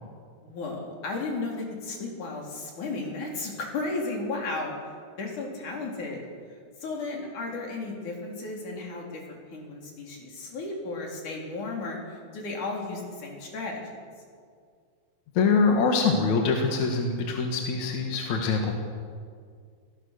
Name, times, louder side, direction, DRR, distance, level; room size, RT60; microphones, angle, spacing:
voice 1, 0.4-4.7 5.2-6.2 6.8-13.8, left 3 dB, 90° left, 0 dB, 5.1 m, -34 dB
voice 2, 15.3-18.7, left 4 dB, 70° left, 2 dB, 3.0 m, -24 dB
25.5 x 18.5 x 6.6 m, 2.1 s
omnidirectional pair, 3.4 m